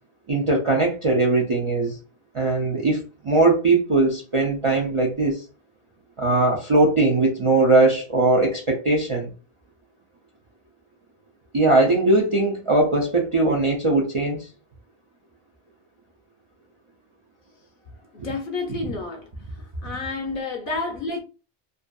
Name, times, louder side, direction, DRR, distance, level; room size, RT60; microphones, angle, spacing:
voice 1, 0.3-2.0 2.3-5.4 6.2-9.3 11.5-14.5 18.2-18.3, right 2 dB, 45° right, 0.4 m, -20 dB
voice 2, 18.1-19.2 19.8-21.2, left 3 dB, 55° left, 0.7 m, -29 dB
2.5 x 2.4 x 2.2 m
omnidirectional pair, 1.1 m